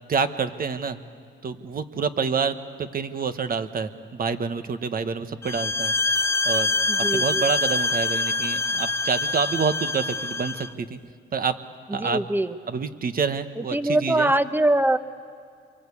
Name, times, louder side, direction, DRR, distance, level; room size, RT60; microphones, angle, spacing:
voice 1, 0.1-1.0 1.4-11.0 11.3-11.6 11.9-12.2 12.7-14.3, right 5 dB, 45° right, 9 dB, 1.4 m, -28 dB
sound 1, 5.4-10.7, left 3 dB, 15° left, 0.7 m, -25 dB
voice 2, 6.9-7.4 11.9-12.6 13.6-15.0, right 1 dB, 10° right, 11 dB, 1.1 m, -23 dB
27.5 x 23.5 x 8.5 m, 2.3 s
cardioid pair, 90°, 20 cm